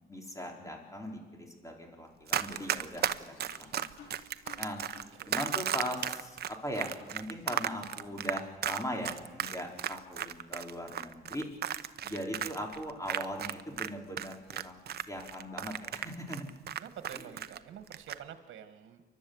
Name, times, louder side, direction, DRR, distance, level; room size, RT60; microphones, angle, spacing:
voice 1, 0.1-3.9 4.6-4.8 5.3-11.5 12.0-14.8 15.1-16.4 17.1-17.3, equal, 15° left, 1 dB, 4.2 m, -40 dB
Run, 2.3-13.9 14.2-17.6 17.9-18.2, right 9 dB, 55° right, 0.8 m, -34 dB
sound 1, 2.5-2.7 3.0-6.2 6.5-6.6 7.0-8.1 8.4-8.6, left 5 dB, 90° left, 4.2 m, -55 dB
voice 2, 16.8-19.0, right 9 dB, 75° right, 9 dB, 1.8 m, -47 dB
29.5 x 12.0 x 7.9 m, 1.3 s
cardioid pair, 90°, 20 cm